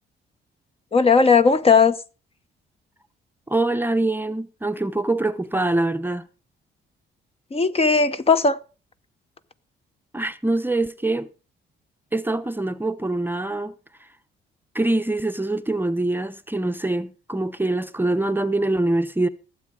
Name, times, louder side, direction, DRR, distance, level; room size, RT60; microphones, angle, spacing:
voice 1, 0.9-2.0 7.5-8.6, left 5 dB, 30° left, 0.9 m, -17 dB
voice 2, 3.5-6.2 10.1-11.3 12.1-13.7 14.0-14.1 14.7-19.3, right 2 dB, 10° right, 0.8 m, -24 dB
15.5 x 7.7 x 5.0 m
cardioid pair, 90°, 20 cm